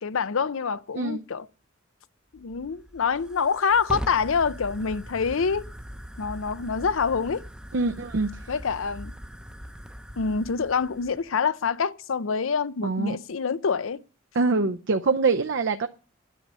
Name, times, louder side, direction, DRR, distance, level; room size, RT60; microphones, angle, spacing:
voice 1, 0.0-1.5 2.3-5.6 6.2-7.4 8.5-9.1 10.2-14.0, left 5 dB, 75° left, 0.6 m, -26 dB
Fire, 2.3-11.3, equal, 5° right, 0.7 m, -41 dB
voice 2, 7.7-8.3 12.8-13.2 14.3-15.9, right 3 dB, 60° right, 0.6 m, -24 dB
10.0 x 6.8 x 8.8 m
head